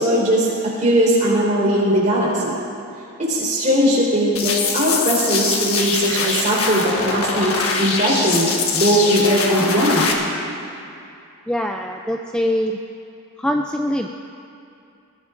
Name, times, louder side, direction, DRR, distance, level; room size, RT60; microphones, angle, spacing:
voice 1, 0.0-2.6 3.2-7.5 7.8-10.1, equal, 35° right, -5 dB, 3.9 m, -19 dB
sound 1, 4.4-10.1, left 4 dB, 75° left, 1.4 m, -23 dB
voice 2, 11.5-12.8 13.4-14.1, equal, 5° left, 2 dB, 0.3 m, -23 dB
20.5 x 15.0 x 2.6 m, 2.6 s
head